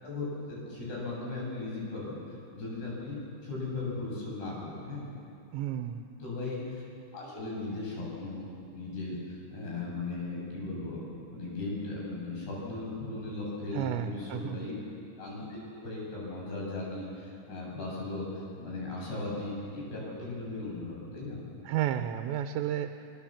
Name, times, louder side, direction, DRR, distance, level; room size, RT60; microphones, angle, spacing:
voice 1, 0.0-5.1 6.2-6.8 7.1-11.0 11.3-14.8 15.2-21.4, left 2 dB, 60° left, -3 dB, 8.6 m, -37 dB
voice 2, 5.5-6.1 13.7-14.6 21.6-23.1, right 11 dB, 80° right, 7 dB, 2.9 m, -32 dB
25.5 x 22.0 x 7.3 m, 2.5 s
omnidirectional pair, 5.3 m